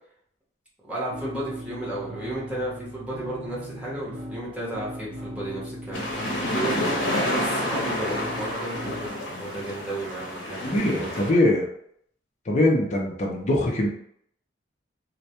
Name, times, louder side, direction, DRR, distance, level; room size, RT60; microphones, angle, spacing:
voice 1, 0.9-11.4, right 1 dB, 5° right, -7 dB, 0.8 m, -34 dB
sound 1, 1.1-9.1, equal, 70° right, 0.5 m, -39 dB
sound 2, 5.9-11.3, left 1 dB, 80° left, 0.7 m, -29 dB
voice 2, 10.6-11.7 12.5-13.9, left 1 dB, 40° left, -1 dB, 0.4 m, -22 dB
2.1 x 2.1 x 2.8 m, 0.67 s
head